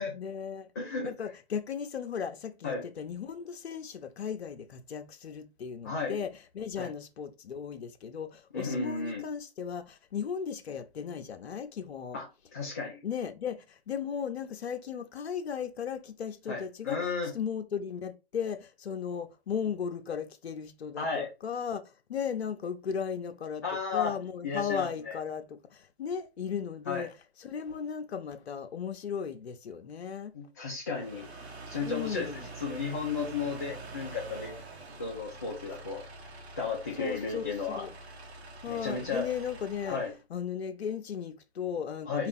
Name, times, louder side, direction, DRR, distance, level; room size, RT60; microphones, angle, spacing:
voice 1, 0.1-0.7 1.0-12.2 13.0-17.1 17.3-30.3 31.8-32.5 37.0-37.9 38.6-40.0 40.3-42.3, left 7 dB, 75° left, 0.7 m, -36 dB
voice 2, 0.8-1.1 2.6-2.8 5.8-6.2 6.8-6.9 8.5-9.3 12.1-12.3 12.5-13.0 16.5-17.3 21.0-21.3 23.6-24.2 24.4-25.2 26.9-27.1 30.3-31.3 31.7-32.3 32.6-34.6 35.0-36.0 36.6-37.9 38.7-39.3 39.8-40.1 42.1-42.3, left 4 dB, 15° left, 0.3 m, -33 dB
sound 1, 30.9-40.2, right 2 dB, 75° right, 1.3 m, -46 dB
4.8 x 2.4 x 3.5 m
hypercardioid pair, 140°, 32 cm